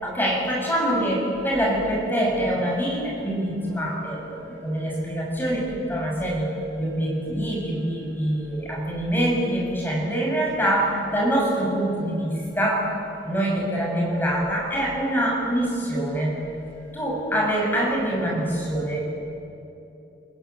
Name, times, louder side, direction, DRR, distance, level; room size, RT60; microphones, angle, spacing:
voice 1, 0.0-6.5 6.8-12.9 13.2-16.4 16.9-19.1, right 1 dB, 10° left, -3 dB, 7.6 m, -25 dB
29.0 x 20.5 x 9.9 m, 2.9 s
head